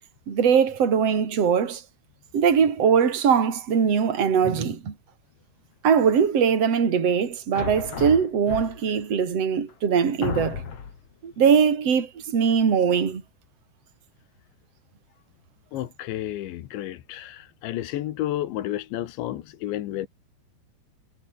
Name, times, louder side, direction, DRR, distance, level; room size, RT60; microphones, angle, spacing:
voice 1, 0.3-1.8 2.3-4.9 5.8-10.6 11.2-13.2, right 7 dB, 35° right, 4.1 m, -21 dB
sound 1, 7.5-9.0 9.7-9.8 10.2-11.1, left 6 dB, 40° left, 3.0 m, -33 dB
voice 2, 15.7-20.1, left 13 dB, 70° left, 3.7 m, -31 dB
omnidirectional pair, 5.6 m